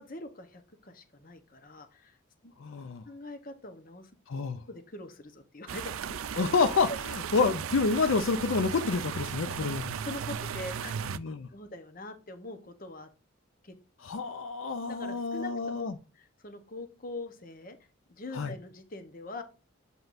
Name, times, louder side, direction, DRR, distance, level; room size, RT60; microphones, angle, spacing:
voice 1, 0.0-2.2 2.4-2.5 3.0-4.1 4.7-5.9 6.9-7.0 9.4-9.5 10.0-10.9 11.5-13.1 13.6-13.7 14.9-15.9 16.1-17.8 18.1-19.4, left 2 dB, 40° left, 8 dB, 1.0 m, -43 dB
voice 2, 2.6-3.0 4.3-4.6 6.4-6.9 7.3-9.8 11.2-11.5 14.0-15.9 18.3-18.5, left 4 dB, 75° left, 9 dB, 0.5 m, -28 dB
sound 1, 5.7-11.2, right 7 dB, 90° right, 0.4 m, -36 dB
7.9 x 5.3 x 2.6 m, 0.32 s
head